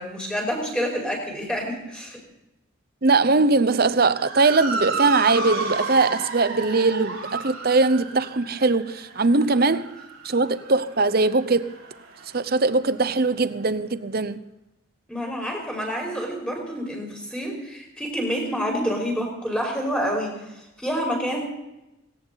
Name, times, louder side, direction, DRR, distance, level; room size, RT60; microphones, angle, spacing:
voice 1, 0.0-2.2 15.1-21.4, equal, 5° left, 5.3 m, -28 dB
voice 2, 3.0-9.9 10.2-11.7 12.3-14.4, right 3 dB, 45° right, 0.8 m, -21 dB
Motor vehicle (road) / Siren, 4.1-12.6, right 3 dB, 80° right, 4.3 m, -32 dB
18.0 x 18.0 x 4.1 m
head